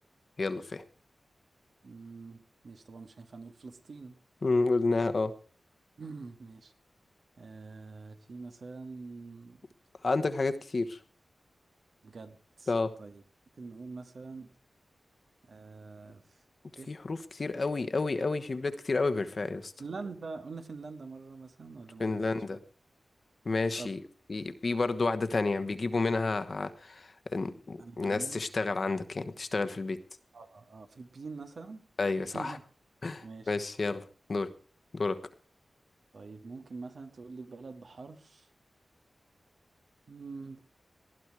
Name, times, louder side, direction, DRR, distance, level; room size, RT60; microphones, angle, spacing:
voice 1, 0.4-0.8 4.4-5.3 10.0-11.0 12.7-12.9 16.9-19.7 22.0-22.6 23.4-24.0 24.3-30.0 32.0-32.6 33.0-34.0 34.3-34.5 34.9-35.2, left 3 dB, 50° left, 9 dB, 1.2 m, -30 dB
voice 2, 1.8-4.2 6.0-6.7 7.4-9.6 12.0-12.7 13.0-13.2 13.6-14.5 15.4-16.4 16.8-16.9 19.8-22.6 23.8-23.9 27.8-28.4 30.3-31.9 32.3-32.6 33.2-33.6 36.1-38.5 40.1-40.6, right 4 dB, 65° right, 7 dB, 1.7 m, -45 dB
19.0 x 11.0 x 4.8 m, 0.39 s
wide cardioid pair, 105°, 0 cm